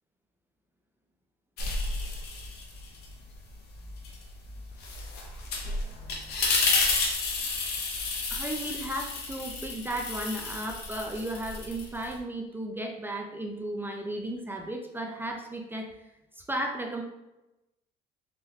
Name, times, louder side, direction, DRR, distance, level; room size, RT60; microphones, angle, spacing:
sound 1, 1.6-3.1 3.5-12.2, left 3 dB, 60° left, 0.7 m, -31 dB
voice 1, 8.3-15.9 16.4-17.0, right 1 dB, 10° right, 1 dB, 0.3 m, -35 dB
3.6 x 2.1 x 2.9 m, 0.97 s
cardioid pair, 115°, 19 cm